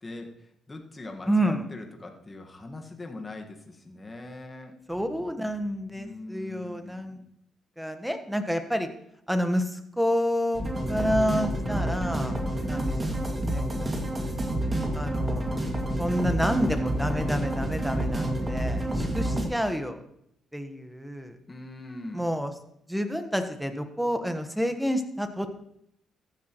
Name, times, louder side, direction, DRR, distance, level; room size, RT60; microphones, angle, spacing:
voice 1, 0.0-4.8 5.9-7.2 21.5-22.3, left 2 dB, 25° left, 2 dB, 1.6 m, -42 dB
voice 2, 1.3-1.7 4.9-7.2 7.8-8.9 9.3-12.4 12.6-13.2 13.5-14.0 14.9-15.7 16.0-20.0 20.5-21.4 22.1-22.5 22.9-25.6, equal, ahead, 7 dB, 1.2 m, -29 dB
sound 1, 10.5-19.5, right 1 dB, 25° right, 2.1 m, -28 dB
14.5 x 10.5 x 3.1 m, 0.75 s
cardioid pair, 90°, 0 cm